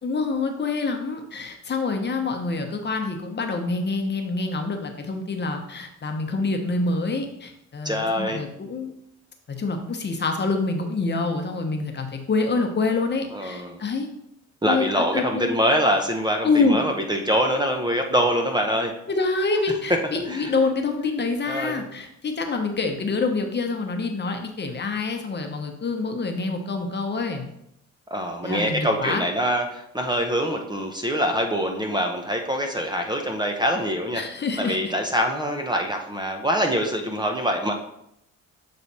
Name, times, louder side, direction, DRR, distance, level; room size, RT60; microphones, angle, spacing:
voice 1, 0.0-8.9 9.5-14.1 14.6-15.5 16.4-16.8 19.1-27.5 28.4-29.2 34.1-34.9, left 3 dB, 35° left, 4 dB, 1.0 m, -26 dB
voice 2, 7.8-8.4 13.3-13.8 14.6-18.9 20.3-20.5 21.4-21.8 28.1-34.2 34.6-37.7, equal, 15° right, 3 dB, 0.7 m, -24 dB
7.2 x 3.3 x 4.1 m, 0.78 s
cardioid pair, 90°, 30 cm